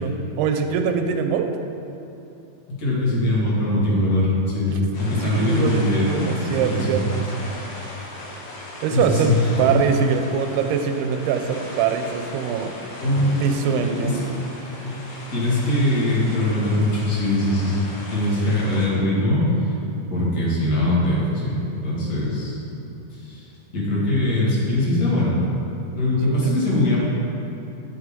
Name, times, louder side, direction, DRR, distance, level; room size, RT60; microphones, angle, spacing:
voice 1, 0.0-1.5 4.7-4.8 5.1-7.3 8.8-12.7 13.3-14.2 26.4-26.6, right 7 dB, 90° right, 6 dB, 2.6 m, -23 dB
voice 2, 2.7-7.0 8.9-9.3 9.6-9.8 13.0-13.3 13.6-14.2 14.8-15.0 15.3-17.8 18.1-19.4 20.1-22.6 23.1-23.5 23.7-25.3 25.9-27.0, left 1 dB, 45° left, -7 dB, 1.2 m, -22 dB
sound 1, 4.9-18.9, left 1 dB, 65° left, 2.8 m, -38 dB
8.7 x 8.0 x 3.7 m, 2.9 s
omnidirectional pair, 4.5 m